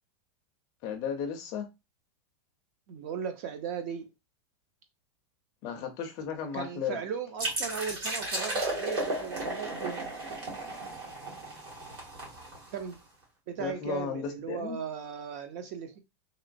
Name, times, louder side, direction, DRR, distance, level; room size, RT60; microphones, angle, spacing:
voice 1, 0.8-1.7 5.6-7.0 13.6-14.8, left 7 dB, 25° left, 0.4 m, -34 dB
voice 2, 2.9-4.1 6.4-10.1 12.7-13.0 13.5-16.0, right 7 dB, 35° right, 0.4 m, -37 dB
sound 1, 7.4-12.9, right 2 dB, 55° right, 1.8 m, -34 dB
3.0 x 2.9 x 2.5 m
supercardioid pair, 180°, 15 cm